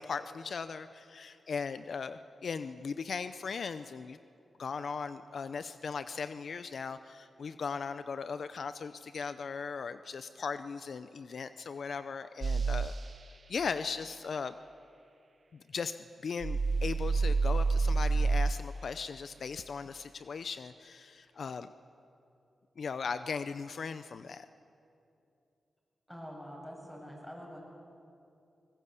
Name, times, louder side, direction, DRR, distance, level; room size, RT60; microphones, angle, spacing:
voice 1, 0.0-4.2 4.6-12.9 13.5-14.5 15.5-16.0 16.2-21.7 22.8-24.5, left 5 dB, 70° left, 12 dB, 0.6 m, -38 dB
sound 1, 12.4-12.9 16.4-18.5, right 4 dB, 50° right, 0.5 m, -28 dB
voice 2, 26.1-27.6, equal, 5° left, -1 dB, 7.7 m, -45 dB
23.5 x 19.5 x 8.3 m, 2.7 s
cardioid pair, 80°, 0 cm